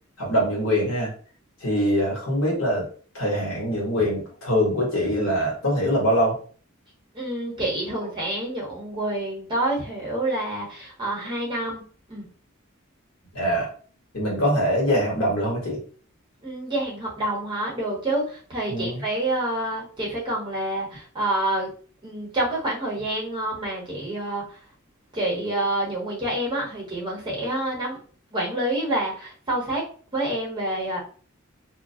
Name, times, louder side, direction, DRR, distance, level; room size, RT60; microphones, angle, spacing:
voice 1, 0.2-1.1 1.6-2.9 3.1-6.4 13.3-13.7 14.1-15.8 18.7-19.0, equal, 70° left, -4 dB, 1.2 m, -23 dB
voice 2, 7.1-11.8 12.1-12.3 16.4-21.7 22.0-24.6 25.1-28.0 28.3-29.8 30.1-31.0, right 1 dB, 25° right, -4 dB, 0.9 m, -27 dB
2.3 x 2.1 x 2.6 m, 0.42 s
head